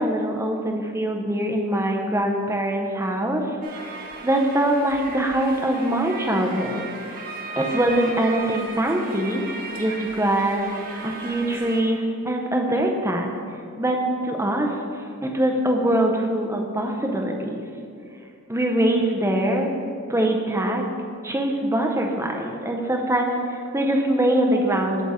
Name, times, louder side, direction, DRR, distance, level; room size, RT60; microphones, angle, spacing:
voice 1, 0.0-3.4 4.2-6.9 7.6-9.4 9.8-10.7 11.0-13.3 13.8-14.0 14.2-14.7 15.2-17.6 18.5-19.7 20.1-20.9 21.2-25.0, right 1 dB, 10° right, 2 dB, 0.6 m, -23 dB
sound 1, 3.6-11.8, right 3 dB, 40° right, 0.8 m, -36 dB
8.2 x 6.3 x 3.6 m, 2.5 s
head